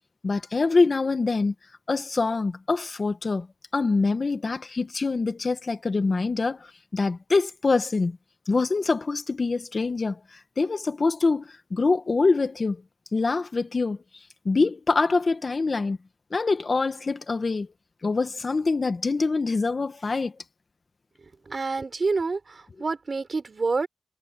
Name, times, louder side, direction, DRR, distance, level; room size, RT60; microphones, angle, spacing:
voice 1, 0.2-1.5 1.9-3.5 3.7-8.2 8.5-12.8 13.1-14.0 14.4-16.0 16.3-17.7 18.0-20.3, left 3 dB, 55° left, 1.5 m, -25 dB
voice 2, 21.2-23.9, right 4 dB, 60° right, 4.7 m, -28 dB
cardioid pair, 55°, 0 cm